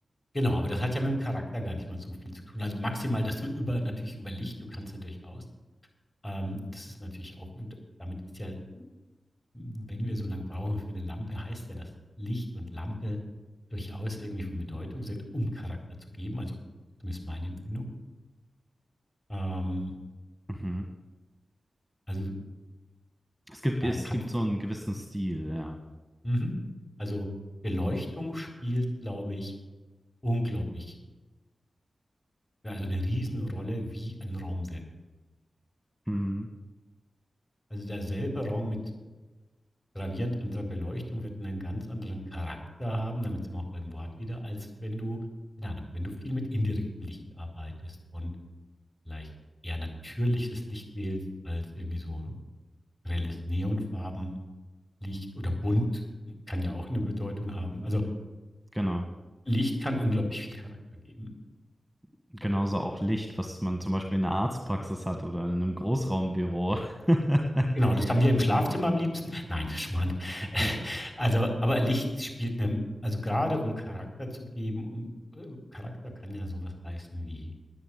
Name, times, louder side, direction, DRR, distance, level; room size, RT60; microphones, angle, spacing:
voice 1, 0.3-5.4 6.2-7.7 8.0-8.8 9.5-11.9 12.2-13.2 13.7-15.8 16.2-16.6 17.0-17.9 19.3-19.9 22.1-22.3 23.8-24.2 26.2-26.5 27.0-27.3 27.6-29.5 30.2-30.9 32.6-34.8 37.7-38.8 39.9-45.2 45.6-48.3 49.1-49.3 49.6-52.3 53.0-54.3 55.0-58.1 59.5-61.3 67.8-72.8 73.0-77.5, equal, 25° left, 2 dB, 4.1 m, -32 dB
voice 2, 20.5-20.8 23.5-25.8 36.1-36.5 58.7-59.0 62.3-67.8 70.4-70.7, equal, ahead, 4 dB, 1.4 m, -29 dB
10.0 x 9.7 x 8.2 m, 1.2 s
cardioid pair, 45°, 0 cm